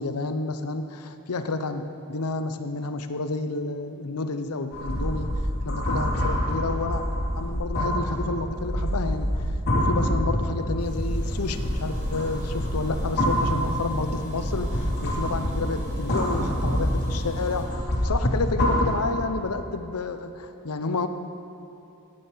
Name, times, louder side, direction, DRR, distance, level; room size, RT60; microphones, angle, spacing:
voice 1, 0.0-5.3 5.6-7.0 7.4-9.5 9.7-21.1, left 3 dB, 90° left, 9 dB, 0.8 m, -30 dB
sound 1, 4.7-19.4, equal, 50° left, 3.2 m, -27 dB
sound 2, 10.8-17.6, equal, 40° right, 3.6 m, -37 dB
14.0 x 9.3 x 5.7 m, 2.8 s
head